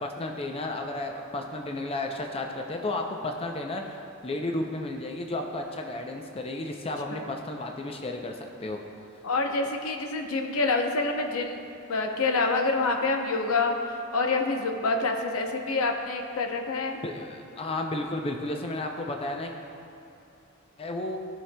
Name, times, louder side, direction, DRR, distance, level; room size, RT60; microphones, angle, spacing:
voice 1, 0.0-8.8 17.0-19.5 20.8-21.2, left 2 dB, 25° left, 3 dB, 0.5 m, -33 dB
voice 2, 9.2-11.6 11.9-17.0, left 3 dB, 75° left, 3 dB, 0.7 m, -27 dB
16.0 x 5.7 x 2.2 m, 2.8 s
head